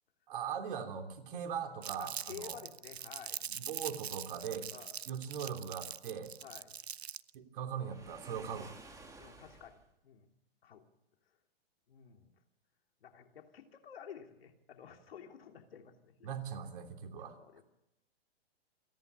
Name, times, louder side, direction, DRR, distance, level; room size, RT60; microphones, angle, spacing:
voice 1, 0.3-2.6 3.6-4.7 5.1-6.3 7.3-8.7 16.2-17.6, right 7 dB, 55° right, 5 dB, 3.2 m, -40 dB
Crumpling crinkling, 1.8-7.3, right 9 dB, 85° right, 0.6 m, -43 dB
voice 2, 2.0-3.4 4.7-5.0 6.4-6.8 9.2-10.3 10.6-10.8 11.9-12.3 13.0-16.3 17.2-17.6, left 8 dB, 65° left, 4 dB, 3.1 m, -52 dB
Waves surf, 7.7-9.9, right 3 dB, 10° right, 2.4 m, -53 dB
27.5 x 11.0 x 8.6 m, 0.90 s
hypercardioid pair, 120°, 31 cm